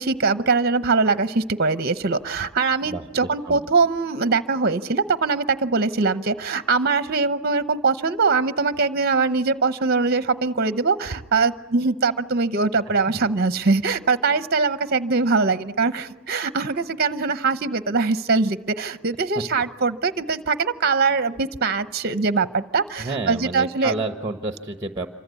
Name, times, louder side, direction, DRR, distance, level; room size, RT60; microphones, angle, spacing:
voice 1, 0.0-23.9, right 4 dB, 45° right, 12 dB, 0.8 m, -22 dB
voice 2, 2.8-3.6 13.1-13.2 23.0-25.1, right 2 dB, 15° right, 6 dB, 1.2 m, -30 dB
27.0 x 24.5 x 8.3 m, 1.2 s
head